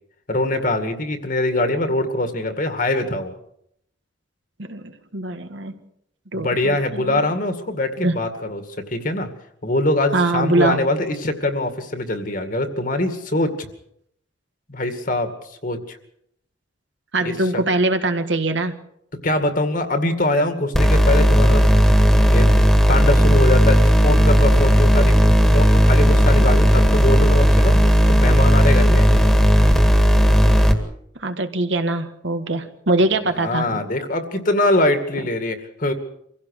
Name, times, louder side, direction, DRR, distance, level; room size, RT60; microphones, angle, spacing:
voice 1, 0.3-3.3 6.3-9.3 9.6-13.7 14.7-15.3 15.6-16.0 17.2-17.6 19.2-21.8 22.3-22.6 22.9-25.2 25.5-29.1 33.2-35.9, left 1 dB, 45° left, 7 dB, 2.2 m, -23 dB
voice 2, 4.6-5.7 6.3-7.3 8.0-8.2 10.1-10.9 17.1-18.8 26.4-26.5 31.2-33.8 35.2-35.3, right 2 dB, 70° right, 7 dB, 1.9 m, -23 dB
sound 1, 20.7-30.7, equal, ahead, 2.0 m, -14 dB
25.5 x 16.0 x 6.6 m, 0.73 s
head